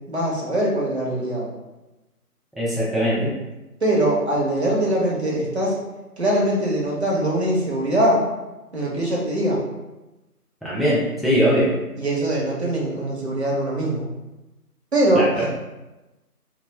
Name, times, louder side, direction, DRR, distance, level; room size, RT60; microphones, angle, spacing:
voice 1, 0.1-1.5 3.8-5.8 6.2-8.3 8.7-9.6 12.0-14.1 14.9-15.5, right 1 dB, 45° right, -4 dB, 0.6 m, -22 dB
voice 2, 2.6-3.3 10.6-11.7 15.1-15.5, equal, ahead, -8 dB, 0.4 m, -21 dB
2.2 x 2.1 x 3.1 m, 1.0 s
figure-of-eight pair, 165°, 47 cm